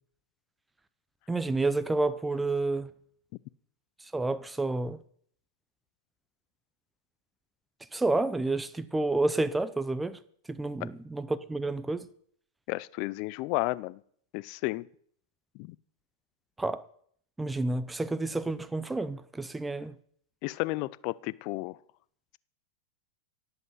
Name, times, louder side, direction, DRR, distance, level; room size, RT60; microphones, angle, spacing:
voice 1, 1.3-2.9 4.1-5.0 7.9-10.2 10.5-12.1 16.6-16.8 17.4-19.9, right 2 dB, 10° right, 0.8 m, -29 dB
voice 2, 12.7-14.0 14.3-14.9 15.6-15.8 20.4-21.8, left 21 dB, 50° left, 0.5 m, -32 dB
17.0 x 8.1 x 7.9 m
hypercardioid pair, 120°, 0 cm